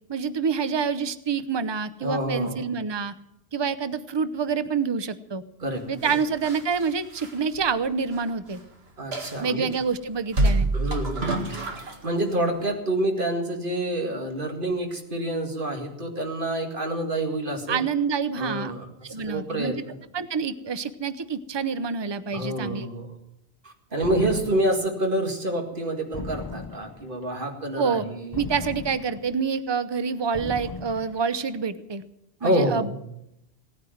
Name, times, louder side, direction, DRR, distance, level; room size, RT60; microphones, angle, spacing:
voice 1, 0.1-3.1 3.5-5.4 5.9-8.6 9.4-10.7 17.7-18.7 19.0-19.8 20.1-22.9 27.8-28.0 28.3-32.0 32.4-32.9, right 5 dB, 30° right, 13 dB, 0.7 m, -27 dB
voice 2, 2.0-2.6 5.6-5.8 9.0-9.7 10.7-11.5 11.8-17.8 18.3-18.9 19.3-19.9 22.3-23.1 23.6-28.4 32.4-32.9, right 1 dB, 50° right, 3 dB, 2.3 m, -27 dB
sound 1, 6.0-8.3 8.5-8.6 9.1-9.8 10.3-12.1 12.5-12.7, right 2 dB, 65° right, 2.1 m, -27 dB
sound 2, 24.0-24.9 26.1-27.1 28.3-29.4 30.3-31.2, left 3 dB, 25° left, 0.7 m, -37 dB
17.5 x 9.6 x 7.9 m, 0.81 s
omnidirectional pair, 1.1 m